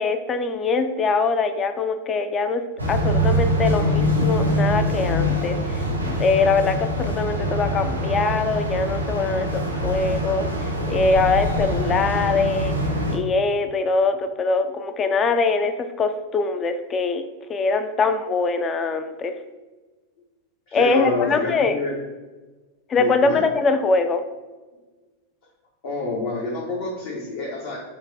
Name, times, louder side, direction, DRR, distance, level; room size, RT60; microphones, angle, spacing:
voice 1, 0.0-2.6 2.9-12.7 13.1-17.2 17.5-19.3 20.7-21.8 22.9-24.2, left 4 dB, 25° left, 8 dB, 0.3 m, -23 dB
sound 1, 2.8-13.2, equal, 85° right, 0.6 m, -24 dB
voice 2, 20.7-22.0 22.9-23.4 25.8-27.8, left 3 dB, 50° left, -3 dB, 0.7 m, -27 dB
5.7 x 2.2 x 2.6 m, 1.2 s
figure-of-eight pair, 90°, 0 cm